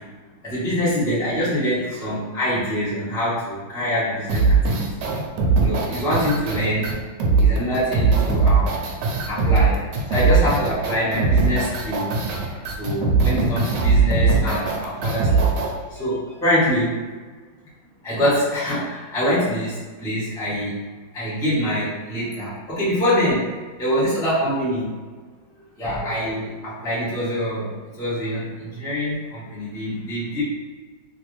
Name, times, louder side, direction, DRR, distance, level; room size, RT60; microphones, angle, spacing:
voice 1, 0.4-4.8 5.6-6.9 7.4-8.7 9.3-12.1 12.5-17.0 18.0-20.8 21.1-23.5 23.8-24.9 25.8-30.4, equal, 5° left, -10 dB, 0.7 m, -24 dB
sound 1, 4.3-15.7, right 4 dB, 75° right, 1.1 m, -20 dB
3.0 x 2.5 x 3.1 m, 1.4 s
omnidirectional pair, 2.1 m